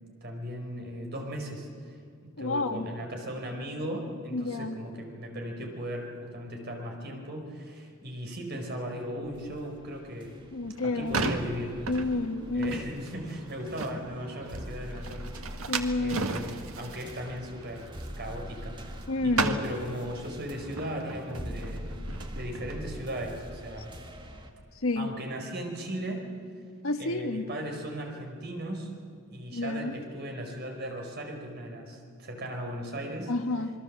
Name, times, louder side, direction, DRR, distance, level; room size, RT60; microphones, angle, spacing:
voice 1, 0.2-1.7 2.2-10.4 10.8-11.8 12.5-15.5 16.0-17.9 18.2-18.9 19.2-23.9 25.0-26.3 27.0-28.9 29.3-33.3, equal, 50° right, 2 dB, 4.8 m, -37 dB
voice 2, 2.4-2.9 4.3-4.8 10.5-11.4 11.9-12.8 15.7-16.3 19.1-19.6 24.8-25.1 26.8-27.4 29.5-29.9 33.3-33.7, left 2 dB, 75° left, 8 dB, 1.4 m, -29 dB
sound 1, 9.2-24.5, equal, 20° right, 1.7 m, -44 dB
sound 2, 10.7-19.0 19.3-22.9, right 4 dB, 80° right, 1.7 m, -36 dB
27.5 x 22.0 x 7.6 m, 2.3 s
head